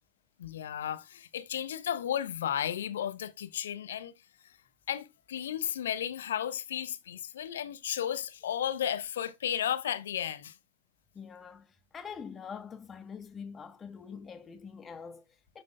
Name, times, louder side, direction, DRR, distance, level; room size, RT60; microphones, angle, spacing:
voice 1, 0.4-4.1 4.9-10.5, left 10 dB, 60° left, 0.8 m, -34 dB
voice 2, 11.1-15.6, left 6 dB, 20° left, 0.9 m, -45 dB
12.0 x 4.4 x 2.2 m
figure-of-eight pair, 90°, 0 cm